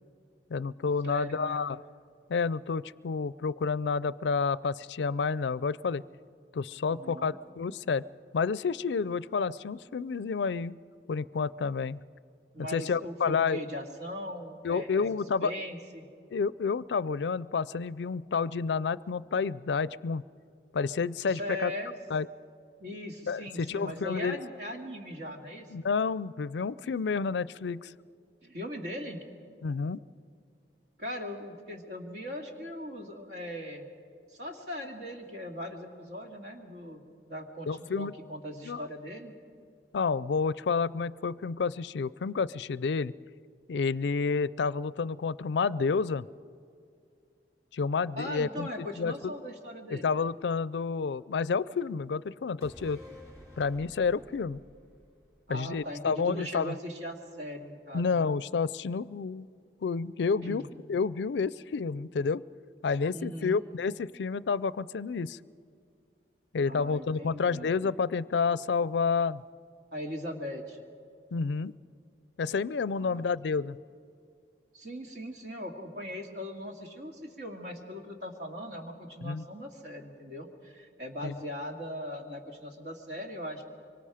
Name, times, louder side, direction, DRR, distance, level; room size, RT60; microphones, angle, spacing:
voice 1, 0.5-1.8 2.3-6.0 6.5-8.0 8.3-10.8 11.1-12.0 12.6-13.6 14.6-15.5 16.3-20.2 20.7-21.7 22.1-22.3 23.3-24.4 25.7-27.9 29.6-30.0 37.7-38.1 38.6-38.8 39.9-43.1 43.7-46.3 47.7-48.7 49.0-49.3 49.9-53.0 53.6-54.6 55.5-56.7 57.9-59.5 59.8-60.6 60.9-62.4 62.8-65.4 66.5-69.4 71.3-71.7 72.4-73.8 79.2-79.4 81.2-81.3, left 5 dB, 75° left, 20 dB, 0.4 m, -29 dB
voice 2, 1.0-1.7 6.8-7.4 12.5-15.0 15.4-16.1 21.2-21.9 22.8-25.7 28.4-29.2 31.0-33.8 34.3-37.0 37.3-39.3 48.2-50.1 55.5-58.3 60.4-60.7 63.1-63.6 66.7-67.7 69.9-70.8 73.0-73.3 74.7-83.6, equal, 65° right, 2 dB, 2.3 m, -39 dB
sound 1, 52.6-56.2 56.5-56.6, left 1 dB, 20° right, 3.5 m, -52 dB
24.5 x 24.0 x 5.0 m, 2.3 s
head